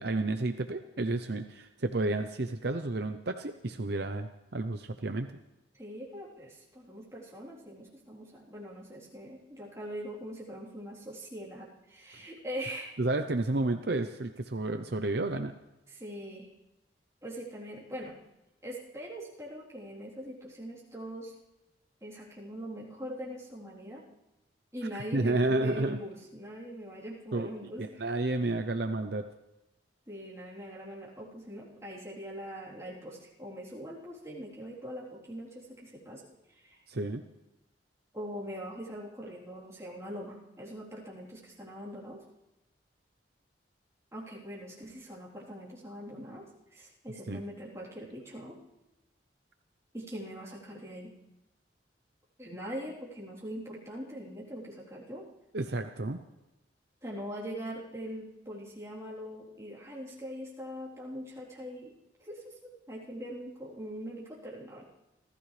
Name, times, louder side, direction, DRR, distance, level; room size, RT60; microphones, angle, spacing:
voice 1, 0.0-5.3 13.0-15.5 25.1-26.0 27.3-27.5 27.8-29.3 36.9-37.2 47.3-47.4 55.5-56.2, right 2 dB, 60° right, 7 dB, 0.7 m, -31 dB
voice 2, 5.7-12.9 15.9-16.5 17.2-18.2 18.6-21.3 22.0-24.0 24.7-28.0 30.1-36.2 36.5-36.8 38.1-42.2 44.1-48.6 49.9-51.2 52.4-55.3 57.0-61.9 62.2-64.8, equal, 15° right, -5 dB, 3.7 m, -42 dB
29.5 x 14.0 x 3.4 m, 0.97 s
head